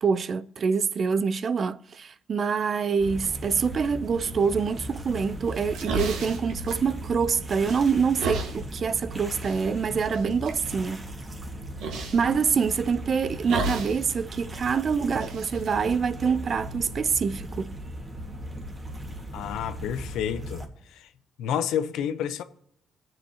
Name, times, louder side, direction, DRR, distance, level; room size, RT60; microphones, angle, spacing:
voice 1, 0.0-11.1 12.1-17.7, right 6 dB, 45° right, 0.5 m, -26 dB
sound 1, 3.0-20.7, equal, 25° right, 1.7 m, -38 dB
sound 2, 5.5-7.3 7.6-8.6 9.4-9.6 10.1-10.6 11.8-12.2 13.5-14.1 14.4-14.5 15.1-16.6, right 3 dB, 80° right, 1.6 m, -32 dB
voice 2, 19.3-21.1 21.4-22.4, left 9 dB, 85° left, 0.7 m, -30 dB
20.5 x 7.7 x 2.9 m
cardioid pair, 95°, 0 cm